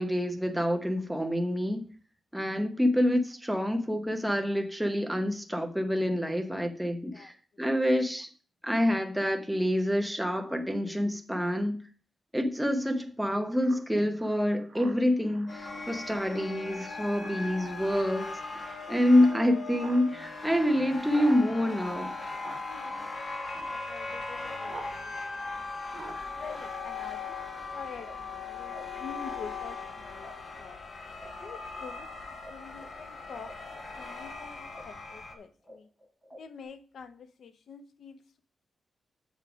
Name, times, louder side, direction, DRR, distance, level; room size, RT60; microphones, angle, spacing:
voice 1, 0.0-1.8 2.3-8.3 8.6-11.8 12.3-18.4 18.9-22.1, left 1 dB, ahead, 0.9 m, -27 dB
voice 2, 6.9-7.6 22.7-23.4 23.6-25.6 26.3-30.3 30.6-30.8 31.4-35.9 36.4-38.4, left 6 dB, 65° left, 0.8 m, -47 dB
Speech synthesizer, 13.6-24.9 25.2-27.4, right 4 dB, 45° right, 1.8 m, -50 dB
sound 1, 15.5-35.3, left 3 dB, 35° left, 1.2 m, -39 dB
sound 2, 26.5-29.0 29.2-32.5 32.7-36.6, right 1 dB, 15° left, 3.9 m, -52 dB
7.2 x 6.4 x 5.0 m
wide cardioid pair, 175°, 0 cm